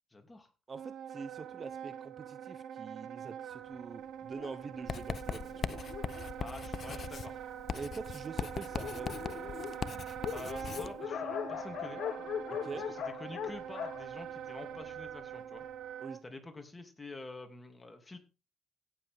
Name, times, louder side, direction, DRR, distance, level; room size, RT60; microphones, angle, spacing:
voice 1, 0.1-0.5 6.4-7.4 10.3-12.0 12.7-15.6 16.2-18.2, left 2 dB, 20° left, 5 dB, 2.8 m, -47 dB
voice 2, 0.7-5.9 7.7-9.1 12.5-12.9 16.0-16.2, right 5 dB, 40° right, 13 dB, 1.0 m, -45 dB
Wind instrument woodwind instrument, 0.7-16.2, right 9 dB, 75° right, 0.9 m, -44 dB
Dog, 4.3-7.3 8.0-8.1 8.4-8.5 8.7-15.1, left 9 dB, 70° left, 1.0 m, -41 dB
Writing, 4.9-10.9, left 7 dB, 50° left, 0.6 m, -40 dB
17.5 x 7.4 x 3.6 m, 0.31 s
cardioid pair, 90°, 0 cm